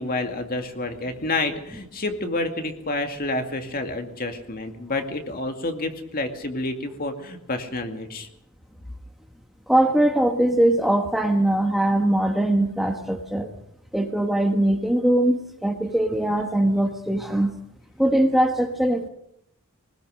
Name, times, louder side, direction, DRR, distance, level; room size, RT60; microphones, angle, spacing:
voice 1, 0.0-8.3, left 2 dB, 40° left, 5 dB, 2.3 m, -29 dB
voice 2, 9.7-13.5 13.9-17.6 18.0-19.1, right 1 dB, ahead, 4 dB, 1.3 m, -21 dB
21.0 x 20.0 x 6.5 m, 0.78 s
head